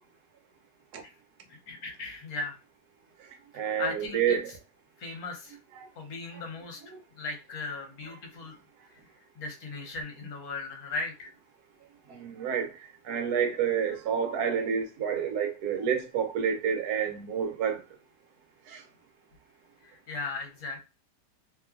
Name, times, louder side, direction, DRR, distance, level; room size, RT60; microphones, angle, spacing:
voice 1, 1.5-2.5 3.5-4.4 5.0-5.6 6.0-6.8 7.2-8.6 9.4-11.3 19.8-20.8, left 3 dB, 60° left, 1.2 m, -37 dB
voice 2, 3.5-4.5 5.8-5.9 12.1-12.7 13.1-17.8 18.7-18.8, right 7 dB, 65° right, 1.1 m, -29 dB
3.0 x 2.2 x 2.4 m
omnidirectional pair, 2.0 m